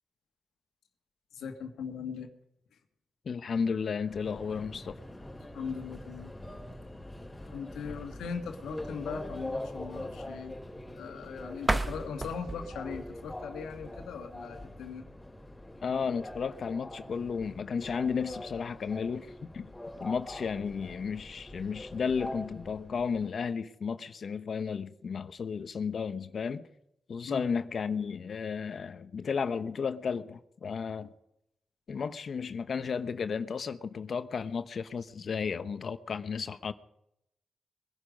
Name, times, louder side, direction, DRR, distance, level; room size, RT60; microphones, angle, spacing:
voice 1, 1.3-2.3 5.5-6.3 7.5-10.6 10.9-15.0 27.2-27.5, left 6 dB, 85° left, 1.7 m, -39 dB
voice 2, 3.3-4.9 15.8-19.7 20.0-26.7 27.1-31.1 31.9-36.7, left 6 dB, 65° left, 0.9 m, -33 dB
Subway metro underground, 4.1-23.3, left 1 dB, 15° left, 3.8 m, -43 dB
sound 1, 11.6-14.4, right 2 dB, 25° right, 1.2 m, -35 dB
22.0 x 11.5 x 5.3 m
supercardioid pair, 50°, 0 cm